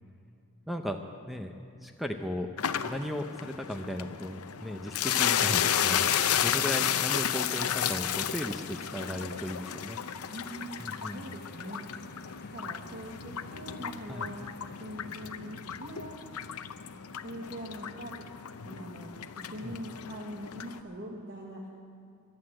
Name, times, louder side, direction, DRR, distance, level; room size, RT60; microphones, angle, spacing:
voice 1, 0.7-1.0 1.3-1.5 1.8-2.5 2.8-10.0 10.8-11.3 14.1-14.3 19.6-19.8, equal, ahead, 5 dB, 0.6 m, -36 dB
sound 1, 2.6-20.8, left 9 dB, 90° left, 0.6 m, -33 dB
Engine starting, 7.1-15.2, left 4 dB, 45° left, 0.6 m, -51 dB
voice 2, 10.3-11.8 12.1-16.2 17.2-18.1 18.7-21.7, equal, 45° right, -1 dB, 1.3 m, -43 dB
14.5 x 11.5 x 7.7 m, 2.7 s
head